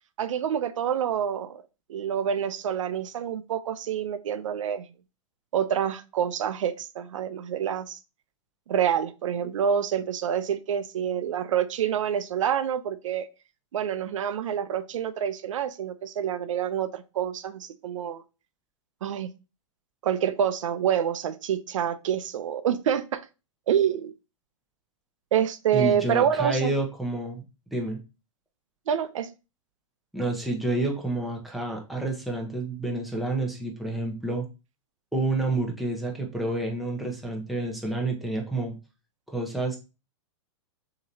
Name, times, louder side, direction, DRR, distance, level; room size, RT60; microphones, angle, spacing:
voice 1, 0.2-1.6 1.9-4.8 5.5-8.0 8.7-13.3 13.7-18.2 19.0-19.3 20.0-23.2 23.7-24.1 25.3-26.7 28.9-29.3, right 9 dB, 80° right, 0.5 m, -27 dB
voice 2, 25.7-27.4 27.7-28.0 30.1-34.5 35.1-38.7 39.3-39.8, right 2 dB, ahead, 0.9 m, -29 dB
6.5 x 2.9 x 2.7 m
hypercardioid pair, 150°, 16 cm